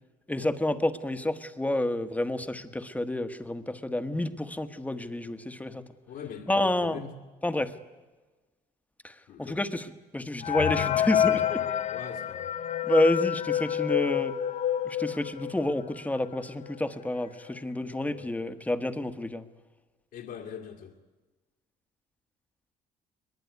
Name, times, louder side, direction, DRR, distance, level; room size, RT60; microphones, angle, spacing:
voice 1, 0.3-5.8 6.5-7.0 7.4-7.7 9.0-9.1 9.4-11.6 12.8-14.3 14.8-19.4, left 1 dB, 10° left, 9 dB, 1.3 m, -29 dB
voice 2, 6.1-7.1 9.3-9.6 11.9-12.5 18.1-18.3 20.1-20.9, left 8 dB, 70° left, -1 dB, 2.2 m, -42 dB
sound 1, 10.4-15.9 16.3-16.4 16.6-16.8 17.5-17.6 18.0-18.3, left 10 dB, 45° left, 0.8 m, -28 dB
21.5 x 21.5 x 9.6 m, 1.2 s
cardioid pair, 110°, 17 cm